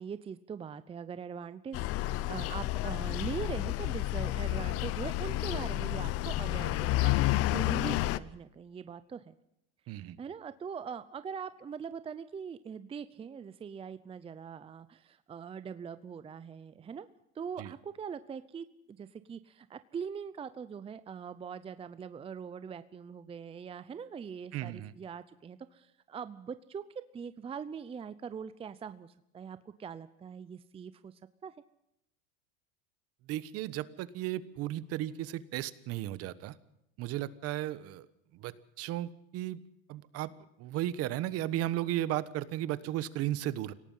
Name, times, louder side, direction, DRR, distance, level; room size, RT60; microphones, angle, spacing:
voice 1, 0.0-9.4 9.9-17.1 17.3-31.5, right 7 dB, 20° right, 13 dB, 0.7 m, -42 dB
sound 1, 1.7-8.2, left 16 dB, 50° left, 0.8 m, -30 dB
voice 2, 24.5-24.9 33.3-36.5 37.0-38.1 38.3-39.6 39.9-40.3 40.6-43.7, right 13 dB, 50° right, 16 dB, 1.3 m, -35 dB
26.0 x 17.5 x 5.7 m, 0.79 s
supercardioid pair, 125°, 31 cm